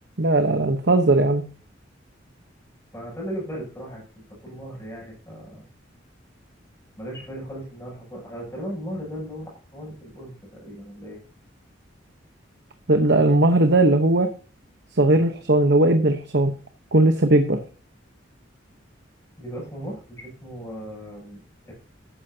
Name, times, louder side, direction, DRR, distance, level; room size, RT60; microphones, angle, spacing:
voice 1, 0.2-1.4 12.9-14.3 14.9-16.5 16.9-17.6, right 2 dB, 65° right, 6 dB, 1.1 m, -18 dB
voice 2, 2.9-5.6 7.0-11.2 19.4-21.7, equal, 15° left, -3 dB, 7.9 m, -37 dB
14.0 x 12.5 x 2.9 m, 0.36 s
head